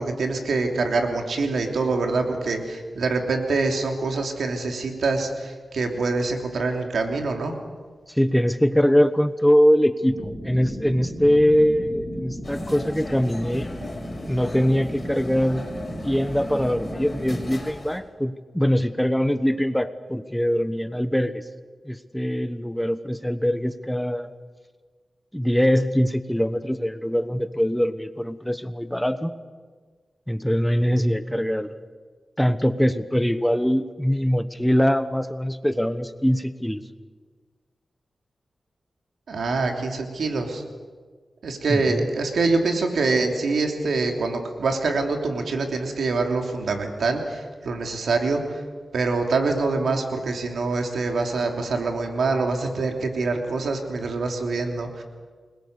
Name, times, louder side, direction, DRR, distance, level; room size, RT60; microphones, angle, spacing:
voice 1, 0.0-7.5 39.3-40.6 41.4-48.6 48.9-55.0, right 3 dB, 85° right, 3 dB, 3.1 m, -25 dB
voice 2, 8.1-13.7 14.3-15.6 16.0-21.4 21.9-24.3 25.3-29.3 30.3-31.8 32.4-36.8 41.7-42.1, equal, 5° left, 11 dB, 1.1 m, -22 dB
sound 1, 10.1-17.6, equal, 25° right, 6.0 m, -35 dB
sound 2, 12.4-18.0, left 2 dB, 45° left, 5.4 m, -39 dB
29.5 x 21.0 x 6.8 m, 1.5 s
cardioid pair, 70°, 0 cm